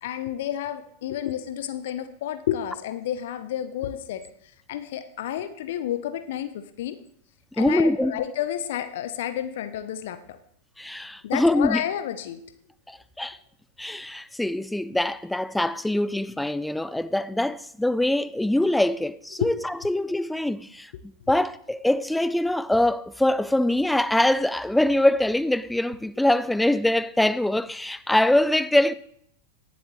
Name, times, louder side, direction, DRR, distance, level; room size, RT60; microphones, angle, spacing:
voice 1, 0.0-4.2 4.7-7.0 7.5-10.4 11.2-12.4 19.4-19.5, left 11 dB, 60° left, 0.7 m, -30 dB
voice 2, 7.6-8.2 10.8-11.8 12.9-13.4 13.8-20.9 21.3-28.9, left 1 dB, 5° left, 0.5 m, -23 dB
18.0 x 7.2 x 3.1 m
figure-of-eight pair, 95°, 0 cm